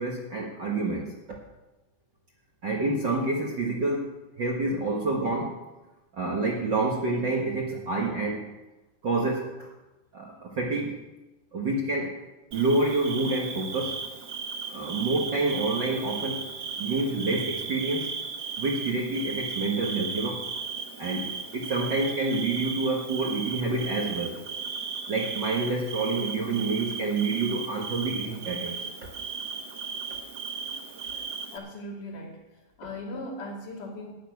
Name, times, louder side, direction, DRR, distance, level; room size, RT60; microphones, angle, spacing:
voice 1, 0.0-1.4 2.6-4.1 4.4-5.6 6.1-8.5 9.0-9.7 10.1-11.0 11.5-12.1 12.5-14.0 14.7-16.5 16.8-18.1 18.6-20.4 21.0-24.4 25.1-28.8 31.1-31.2, right 3 dB, 50° right, -1 dB, 1.5 m, -28 dB
Bird / Cricket, 12.5-31.6, right 5 dB, 80° right, 0.9 m, -36 dB
voice 2, 31.5-34.1, left 1 dB, 75° left, -3 dB, 4.2 m, -39 dB
12.0 x 6.9 x 9.5 m, 1.0 s
omnidirectional pair, 3.7 m